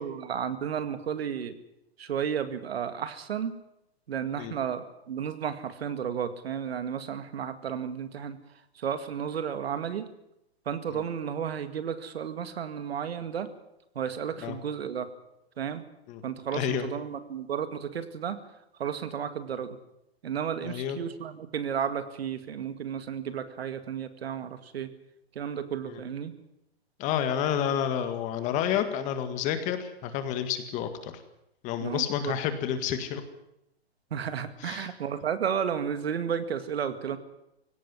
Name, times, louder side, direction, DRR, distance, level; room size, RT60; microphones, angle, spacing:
voice 1, 0.0-1.6 2.0-3.6 4.1-8.4 8.7-10.1 10.7-13.5 14.0-15.1 15.6-15.8 16.2-18.4 18.8-19.8 20.2-24.9 25.3-26.3 31.8-32.3 34.1-37.2, right 8 dB, 70° right, 11 dB, 2.2 m, -33 dB
voice 2, 16.5-16.8 20.6-21.0 25.9-26.0 27.0-31.1 31.6-33.2 34.7-34.9, left 9 dB, 25° left, 9 dB, 1.8 m, -29 dB
18.0 x 17.5 x 9.7 m, 0.84 s
hypercardioid pair, 155°, 32 cm